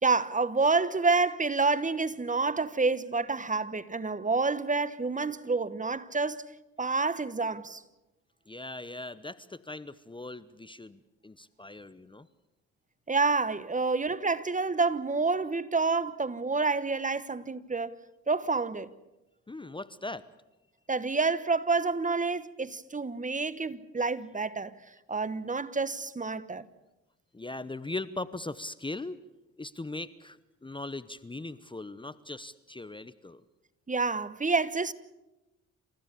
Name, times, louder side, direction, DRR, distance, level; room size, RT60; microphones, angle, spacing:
voice 1, 0.0-6.4 6.8-7.8 13.1-17.9 18.3-18.9 20.9-24.7 25.1-26.7 33.9-34.9, right 4 dB, 25° right, 1.2 m, -28 dB
voice 2, 8.5-12.3 19.5-20.3 27.3-29.2 29.6-33.4, left 2 dB, 15° left, 0.9 m, -39 dB
28.5 x 15.5 x 8.5 m
hypercardioid pair, 55°, 33 cm